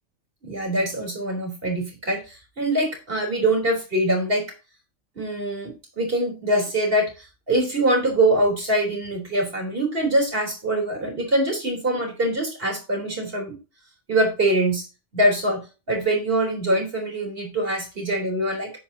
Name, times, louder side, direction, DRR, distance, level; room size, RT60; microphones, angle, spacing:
voice 1, 0.4-4.5 5.2-13.6 14.1-14.8 15.1-18.7, right 1 dB, 50° right, 2 dB, 4.0 m, -23 dB
9.9 x 8.7 x 2.9 m, 0.29 s
omnidirectional pair, 1.3 m